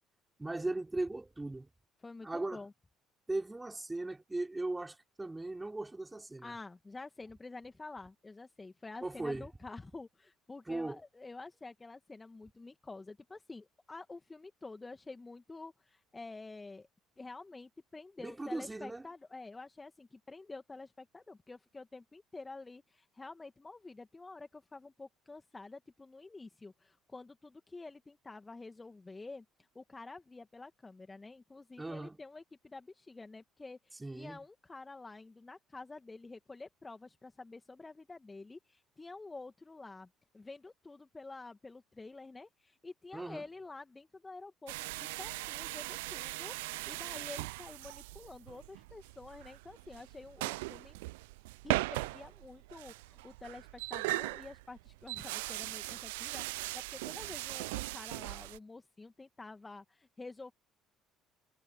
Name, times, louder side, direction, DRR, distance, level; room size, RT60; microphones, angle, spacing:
voice 1, 0.4-1.7 2.2-2.6 3.3-6.5 9.0-9.5 10.7-11.0 18.2-19.0 31.8-32.2 34.0-34.4 43.1-43.5, right 2 dB, 15° right, 5.9 m, -38 dB
voice 2, 2.0-2.7 6.4-16.9 17.2-29.4 29.7-40.1 40.3-51.0 51.6-60.5, left 3 dB, 20° left, 2.2 m, -49 dB
sound 1, 44.7-58.6, right 23 dB, 70° right, 0.5 m, -39 dB
figure-of-eight pair, 55°, 0 cm